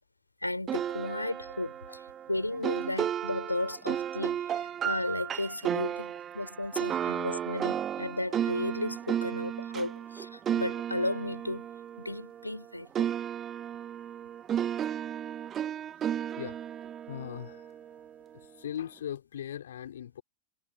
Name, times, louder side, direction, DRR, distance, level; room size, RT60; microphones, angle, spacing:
voice 1, 0.4-11.7 12.0-12.9, left 1 dB, 85° left, 4.2 m, -34 dB
sound 1, 0.7-12.6 12.9-18.2, right 9 dB, 25° right, 0.9 m, -34 dB
voice 2, 16.4-18.1 18.3-20.2, left 10 dB, 65° left, 3.0 m, -40 dB
figure-of-eight pair, 90°, 0 cm